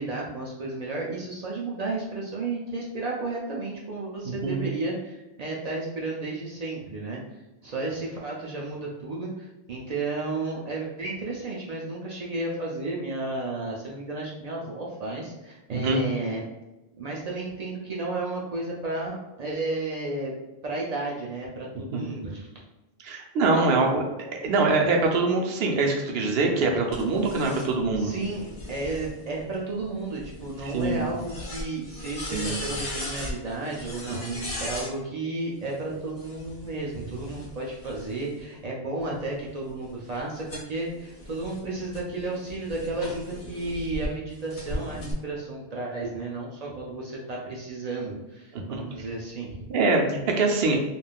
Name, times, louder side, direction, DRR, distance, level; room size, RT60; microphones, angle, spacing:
voice 1, 0.0-7.2 7.6-16.4 17.0-20.3 20.6-22.5 28.0-49.6, right 2 dB, 50° right, -3 dB, 0.5 m, -33 dB
voice 2, 4.2-4.6 15.7-16.0 21.9-22.0 23.0-24.0 24.3-28.1 30.6-31.0 32.3-32.6 34.1-34.4 48.5-49.0 49.7-50.8, right 3 dB, 75° right, 1 dB, 0.8 m, -24 dB
sound 1, 26.9-34.9 36.1-38.4 39.0-44.1 44.5-45.1, left 1 dB, 60° left, 1.2 m, -38 dB
3.4 x 2.5 x 2.2 m, 1.0 s
omnidirectional pair, 1.0 m